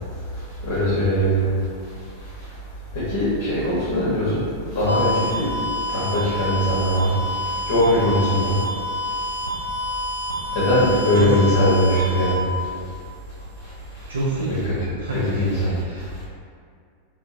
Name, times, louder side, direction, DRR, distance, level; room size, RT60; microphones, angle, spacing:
voice 1, 0.6-1.5 2.9-4.4 4.7-5.5 5.9-7.2 7.7-8.6 10.5-12.4 14.4-14.8 15.1-15.7, equal, 50° left, -9 dB, 0.7 m, -20 dB
sound 1, 4.9-12.4, left 1 dB, 85° left, 0.3 m, -28 dB
voice 2, 10.7-11.3 14.1-14.6 15.0-16.1, right 2 dB, 70° right, -7 dB, 0.4 m, -28 dB
2.7 x 2.0 x 2.5 m, 2.2 s
figure-of-eight pair, 90°, 0 cm